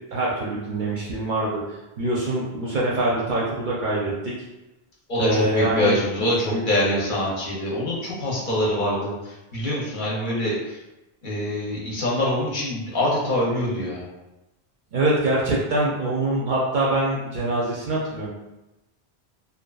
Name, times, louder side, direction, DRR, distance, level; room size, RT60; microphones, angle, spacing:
voice 1, 0.1-4.3 5.2-6.2 6.5-6.6 14.9-18.3, right 1 dB, 60° right, -5 dB, 0.6 m, -24 dB
voice 2, 5.1-10.8 11.2-14.0, left 1 dB, 55° left, -5 dB, 0.7 m, -25 dB
2.6 x 2.3 x 2.2 m, 1.0 s
omnidirectional pair, 1.1 m